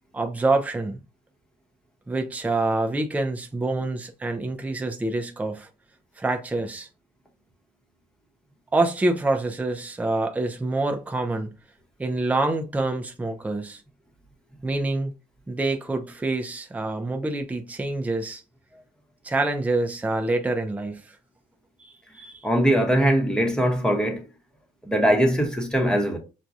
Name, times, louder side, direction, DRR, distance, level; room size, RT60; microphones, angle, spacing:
voice 1, 0.1-1.0 2.1-5.7 6.2-6.9 8.7-11.5 12.0-13.8 14.6-15.1 15.5-18.4 19.2-21.0 21.8-22.5, right 2 dB, 10° right, 0.5 m, -26 dB
voice 2, 22.4-24.3 24.8-26.2, equal, 5° left, 1.0 m, -21 dB
6.0 x 2.2 x 2.6 m
cardioid pair, 120°, 14 cm